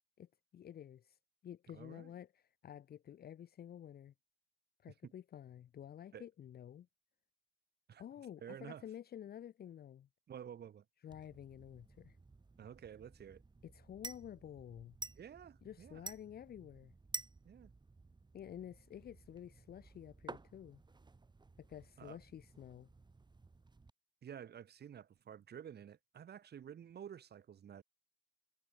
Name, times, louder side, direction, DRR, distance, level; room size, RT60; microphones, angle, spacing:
voice 1, 0.2-4.1 4.8-6.9 8.0-10.1 11.0-12.2 13.6-15.0 15.6-16.9 18.3-20.8 21.6-22.9, left 10 dB, 50° left, 0.7 m, -51 dB
voice 2, 1.7-2.1 5.0-5.1 6.1-6.3 7.9-8.0 8.4-8.8 10.3-10.8 12.6-13.4 15.2-16.0 17.4-17.7 22.0-22.2 24.2-27.8, right 9 dB, 55° right, 2.2 m, -51 dB
sound 1, 11.1-23.9, right 3 dB, 20° right, 2.0 m, -53 dB
cardioid pair, 90°, 20 cm